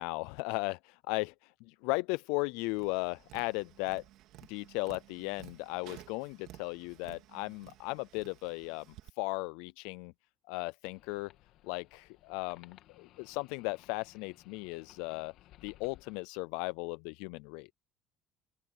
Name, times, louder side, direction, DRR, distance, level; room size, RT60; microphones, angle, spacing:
voice 1, 0.0-4.0 4.5-8.9 9.2-10.1 10.5-11.3 11.6-15.3 15.6-17.7, left 25 dB, 85° left, 0.4 m, -36 dB
Tap, 2.7-9.1, right 15 dB, 70° right, 3.2 m, -54 dB
sound 1, 10.9-16.2, left 14 dB, 70° left, 2.3 m, -60 dB
open air
supercardioid pair, 95°, 0 cm